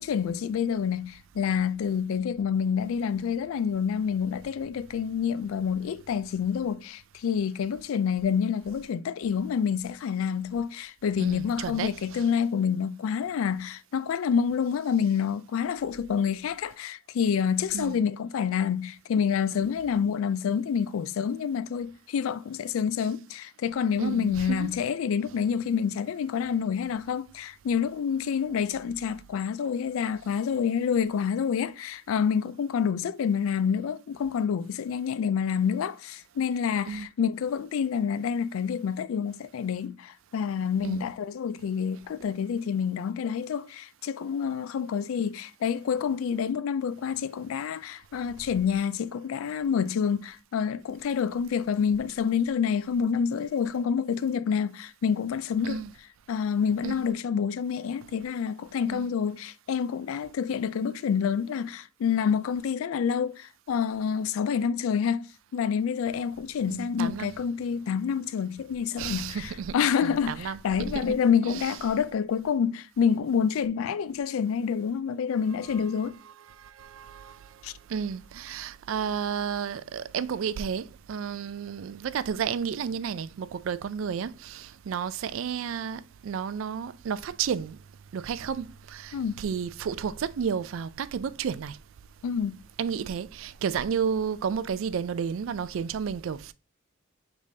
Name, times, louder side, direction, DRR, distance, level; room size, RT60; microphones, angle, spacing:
voice 1, 0.0-55.8 56.3-65.3 65.5-76.2 77.6-77.7 89.1-89.4 92.2-92.6, left 7 dB, 80° left, 0.3 m, -28 dB
voice 2, 11.2-11.9 17.7-18.0 24.0-24.7 36.9-37.1 40.8-41.1 55.6-55.9 56.8-57.0 58.9-59.1 66.7-67.3 69.0-69.7 70.0-70.6 70.9-71.2 71.5-71.6 76.8-77.3 77.9-87.8 88.1-91.8 92.8-96.5, right 7 dB, 70° right, 0.3 m, -32 dB
5.0 x 3.5 x 2.6 m
head